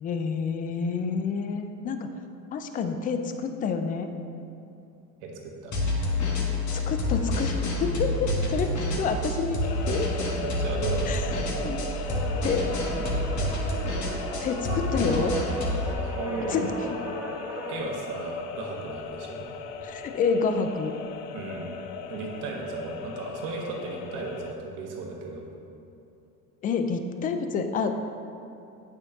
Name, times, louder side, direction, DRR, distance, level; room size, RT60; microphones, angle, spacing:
voice 1, 0.0-2.1 2.5-4.1 6.9-9.6 9.9-10.3 11.1-11.3 11.6-12.2 12.4-12.7 14.4-15.4 16.5-16.7 19.8-21.0 26.6-28.2, left 5 dB, 20° left, 7 dB, 0.3 m, -28 dB
voice 2, 5.2-5.8 10.4-11.2 11.5-11.8 12.1-12.2 13.0-13.2 16.0-17.0 17.7-19.4 21.3-21.8 22.1-25.4, right 3 dB, 65° right, 0 dB, 1.3 m, -35 dB
sound 1, 5.7-15.9, left 1 dB, 40° left, 1.4 m, -28 dB
sound 2, 9.6-24.5, left 6 dB, 75° left, 0.6 m, -38 dB
sound 3, 12.1-17.8, right 2 dB, 5° right, 1.3 m, -36 dB
8.6 x 5.9 x 2.8 m, 2.7 s
hypercardioid pair, 70°, 47 cm